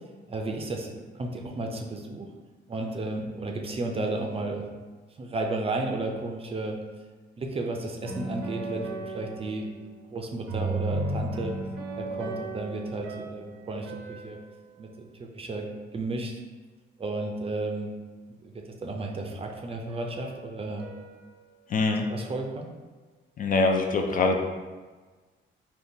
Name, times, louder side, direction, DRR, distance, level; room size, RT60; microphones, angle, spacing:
voice 1, 0.3-2.3 2.7-4.6 5.2-6.8 7.4-9.7 10.1-11.5 11.9-14.4 14.8-15.7 15.9-16.4 17.0-17.9 18.3-20.8 22.1-22.7, right 2 dB, 30° right, 2 dB, 0.4 m, -33 dB
sound 1, 8.0-10.2 10.5-14.8 19.9-21.9, right 2 dB, 85° right, 0.6 m, -36 dB
voice 2, 21.7-22.1 23.4-24.4, left 3 dB, 45° left, 3 dB, 0.4 m, -23 dB
3.6 x 2.4 x 2.7 m, 1.4 s
cardioid pair, 90°, 20 cm